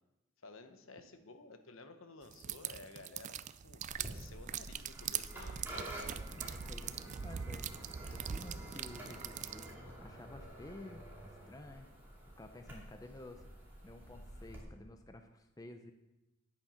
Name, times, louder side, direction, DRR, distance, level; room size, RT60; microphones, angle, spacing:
voice 1, 0.4-5.7, left 3 dB, 70° left, 8 dB, 1.0 m, -54 dB
sound 1, 2.3-9.7, right 9 dB, 35° right, 0.3 m, -42 dB
sound 2, 3.9-14.6, equal, 10° right, 2.5 m, -49 dB
voice 2, 6.3-7.7 8.1-9.7 10.0-11.9 12.4-13.5 13.8-15.9, left 1 dB, 15° left, 6 dB, 0.6 m, -52 dB
9.0 x 8.7 x 5.6 m, 0.98 s
head